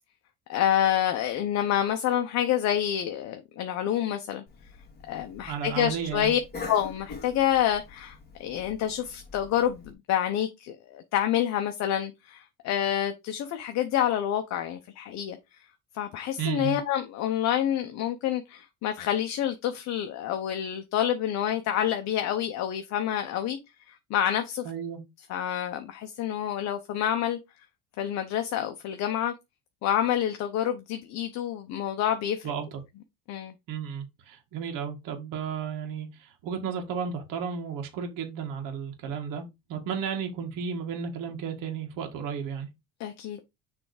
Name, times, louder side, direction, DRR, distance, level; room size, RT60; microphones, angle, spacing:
voice 1, 0.5-4.4 5.1-6.4 6.7-15.4 15.9-23.6 24.1-24.6 25.3-27.4 28.0-29.3 29.8-32.5 33.3-33.5 43.0-43.4, left 10 dB, 45° left, 0.8 m, -28 dB
Cough, 4.5-9.9, left 4 dB, 25° left, 2.1 m, -44 dB
voice 2, 5.5-6.3 16.4-16.8 24.6-25.0 32.4-32.8 33.7-42.7, right 7 dB, 55° right, 1.8 m, -33 dB
6.7 x 3.5 x 4.8 m
cardioid pair, 160°, 39 cm